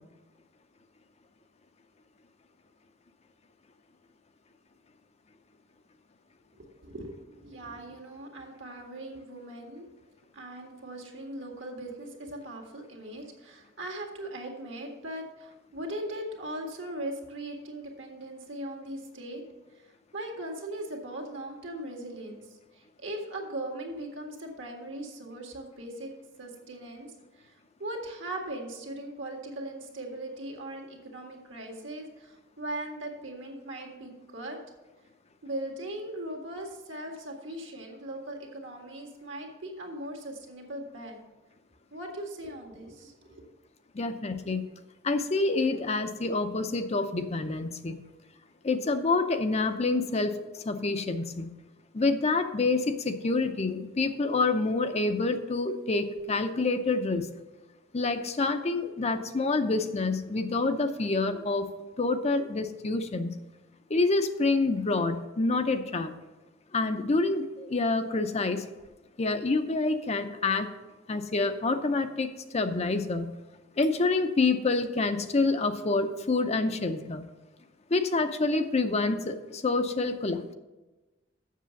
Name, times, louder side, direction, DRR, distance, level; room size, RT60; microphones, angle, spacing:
voice 1, 6.5-9.9 10.3-19.4 19.7-26.1 26.4-34.6 35.4-41.2 41.9-43.4, right 1 dB, 70° right, 2 dB, 1.9 m, -39 dB
voice 2, 43.9-44.7 45.0-48.0 48.6-51.5 51.9-57.3 57.9-61.7 62.0-63.4 63.9-66.1 66.7-68.7 69.2-70.7 71.1-73.3 73.8-77.3 77.9-80.5, left 3 dB, 35° left, 8 dB, 0.6 m, -27 dB
7.5 x 6.7 x 6.9 m, 1.1 s
head